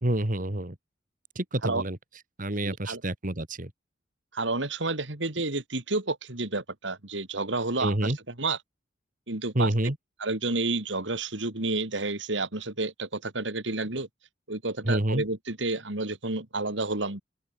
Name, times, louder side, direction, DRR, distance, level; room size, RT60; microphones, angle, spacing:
voice 1, 0.0-0.8 1.4-2.0 2.4-3.7 7.8-8.2 9.5-10.0 14.8-15.2, right 1 dB, 50° right, 2.4 m, -27 dB
voice 2, 2.6-3.0 4.3-8.6 9.3-9.7 10.2-14.1 14.5-17.2, right 3 dB, 85° right, 3.1 m, -30 dB
open air
head